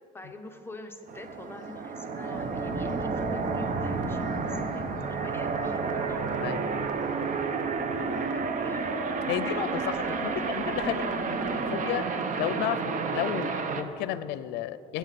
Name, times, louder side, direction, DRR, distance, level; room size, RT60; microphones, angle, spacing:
voice 1, 0.1-6.3 8.1-9.0 9.7-10.6, left 1 dB, 15° left, 4 dB, 0.9 m, -45 dB
sound 1, 1.1-13.8, right 4 dB, 50° right, 1.0 m, -31 dB
sound 2, 2.3-11.6, right 1 dB, 35° right, 3.2 m, -41 dB
voice 2, 6.4-6.8 9.3-12.1 12.4-15.0, left 11 dB, 85° left, 15 dB, 0.5 m, -33 dB
21.5 x 9.1 x 4.1 m, 2.8 s
cardioid pair, 110°, 17 cm